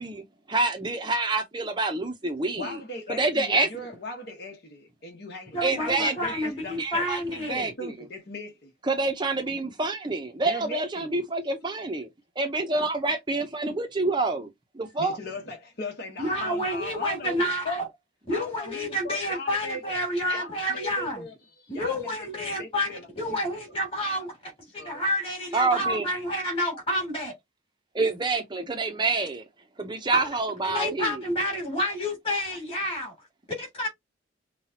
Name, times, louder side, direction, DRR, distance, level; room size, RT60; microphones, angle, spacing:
voice 1, 0.0-2.8 3.2-3.7 5.6-6.5 6.8-7.2 7.5-7.9 8.9-12.1 12.4-14.5 14.7-15.2 25.5-26.1 27.9-29.4 29.8-31.2, right 3 dB, 25° right, 0.7 m, -27 dB
voice 2, 2.6-7.1 7.5-8.7 10.4-11.2 15.0-17.9 18.3-20.0 20.3-23.4 24.2-24.3 24.7-25.0, left 2 dB, 55° left, 1.3 m, -38 dB
voice 3, 5.5-7.7 16.2-17.9 18.3-21.2 21.7-24.3 24.7-27.3 30.6-33.1 33.6-33.9, left 1 dB, 30° left, 2.9 m, -29 dB
5.7 x 2.3 x 2.8 m
head